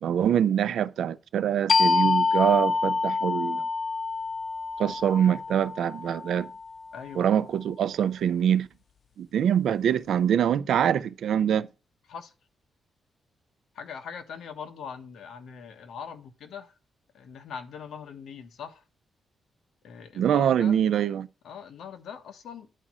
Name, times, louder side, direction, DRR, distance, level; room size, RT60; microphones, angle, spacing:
voice 1, 0.0-3.6 4.8-6.5 7.2-8.7 9.2-11.7 20.1-21.3, right 9 dB, 75° right, 0.5 m, -24 dB
sound 1, 1.7-7.0, left 4 dB, 45° left, 0.3 m, -27 dB
voice 2, 6.9-7.5 12.1-12.3 13.7-16.7 17.1-18.8 19.8-20.8 21.4-22.7, left 6 dB, 80° left, 1.2 m, -41 dB
10.0 x 4.2 x 6.1 m
wide cardioid pair, 155°, 0 cm